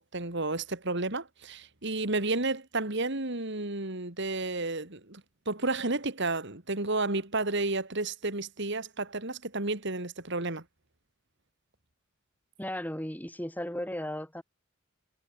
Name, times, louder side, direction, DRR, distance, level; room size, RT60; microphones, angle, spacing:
voice 1, 0.0-5.2 5.5-10.6, right 2 dB, 55° right, 2.7 m, -31 dB
voice 2, 12.6-14.4, left 1 dB, 10° left, 3.8 m, -35 dB
head